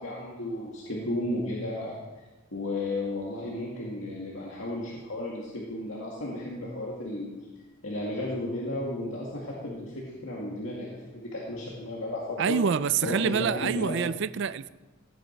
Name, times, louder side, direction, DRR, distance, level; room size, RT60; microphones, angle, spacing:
voice 1, 0.0-1.9 2.5-7.3 7.8-12.6 13.0-14.0, left 1 dB, 70° left, 2.1 m, -33 dB
voice 2, 12.4-14.7, right 6 dB, 55° right, 0.4 m, -26 dB
16.5 x 9.3 x 4.5 m
head